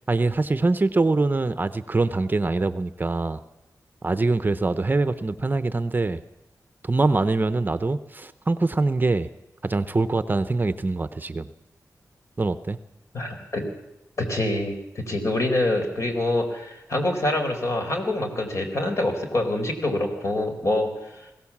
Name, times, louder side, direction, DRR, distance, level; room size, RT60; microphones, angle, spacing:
voice 1, 0.1-3.4 4.0-6.2 6.8-9.3 9.6-11.5 12.4-12.8, right 3 dB, 30° right, 12 dB, 0.8 m, -23 dB
voice 2, 13.1-13.7 14.2-20.9, left 1 dB, 50° left, 3 dB, 4.3 m, -25 dB
21.5 x 16.5 x 7.3 m, 0.93 s
wide cardioid pair, 110°, 6 cm